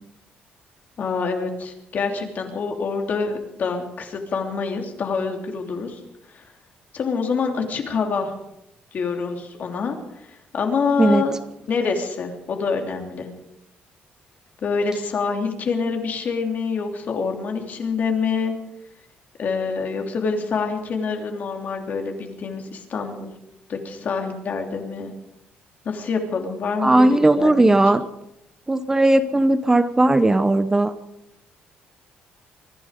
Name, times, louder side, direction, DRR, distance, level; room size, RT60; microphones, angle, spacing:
voice 1, 1.0-6.0 6.3-6.4 6.9-8.3 8.9-10.2 10.5-11.3 11.7-13.3 14.6-18.5 19.4-23.3 23.7-25.1 25.8-27.5, left 5 dB, 55° left, 3 dB, 3.1 m, -26 dB
voice 2, 26.8-28.0 28.7-30.9, right 2 dB, 15° right, 12 dB, 0.8 m, -17 dB
24.0 x 11.5 x 5.2 m, 0.84 s
cardioid pair, 100°, 3 cm